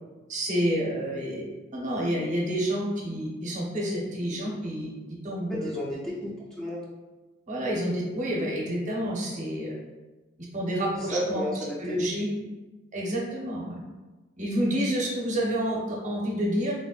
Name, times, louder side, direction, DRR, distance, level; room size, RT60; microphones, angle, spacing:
voice 1, 0.3-1.4 1.7-4.9 5.2-5.8 7.5-9.7 10.5-11.4 11.8-12.3 12.9-13.8 14.4-16.7, equal, 40° right, -3 dB, 0.6 m, -29 dB
voice 2, 5.5-6.8 11.0-12.0, equal, 5° left, -6 dB, 0.3 m, -32 dB
3.6 x 2.0 x 2.3 m, 1.2 s
head